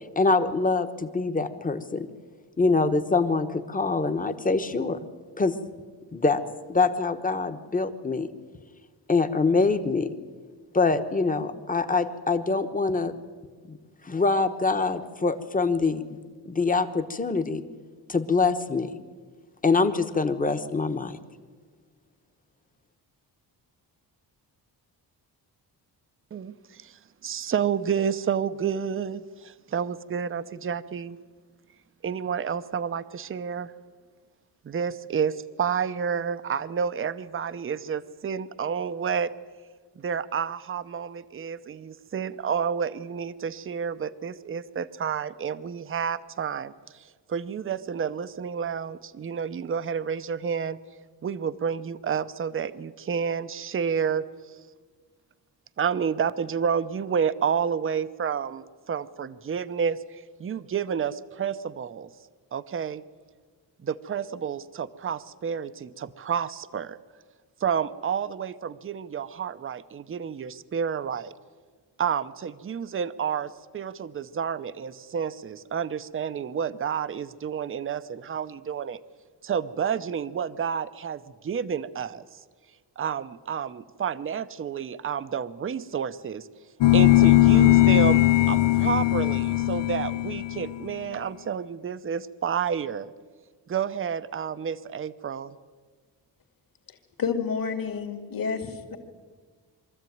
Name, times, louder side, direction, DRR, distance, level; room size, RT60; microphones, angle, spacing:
voice 1, 0.2-2.1 2.6-5.0 5.4-5.6 6.1-6.4 6.7-8.3 9.1-10.1 10.7-13.1 13.7-13.8 14.0-16.0 16.5-17.6 18.1-19.0 19.6-21.2, left 3 dB, 20° left, 9 dB, 1.1 m, -24 dB
voice 2, 26.3-31.2 32.0-33.7 34.6-39.3 40.0-50.8 51.2-54.3 55.8-62.1 62.5-63.0 63.8-67.0 67.6-71.3 72.0-79.0 79.4-82.4 83.0-86.5 86.9-88.2 88.5-93.1 93.7-95.5, right 7 dB, 30° right, 14 dB, 0.7 m, -30 dB
sound 1, 86.8-90.9, left 16 dB, 90° left, 0.7 m, -19 dB
voice 3, 97.2-99.0, left 6 dB, 55° left, 5 dB, 2.5 m, -29 dB
23.5 x 14.0 x 9.3 m, 1.5 s
wide cardioid pair, 150°, 41 cm